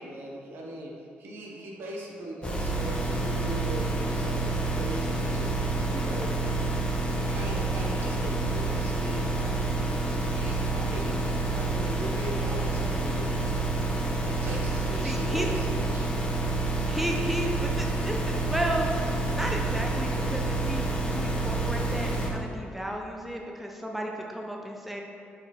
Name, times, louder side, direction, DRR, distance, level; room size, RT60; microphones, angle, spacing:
voice 1, 0.0-5.5 5.9-6.4 7.3-11.2 11.5-13.5 14.2-16.1, right 1 dB, 70° right, -2 dB, 1.0 m, -39 dB
sound 1, 2.4-22.3, right 2 dB, 25° left, 1.0 m, -28 dB
voice 2, 15.0-15.5 16.9-18.9 19.3-25.0, equal, 5° right, 1 dB, 0.6 m, -33 dB
4.7 x 4.6 x 4.3 m, 2.3 s
cardioid pair, 95°, 4 cm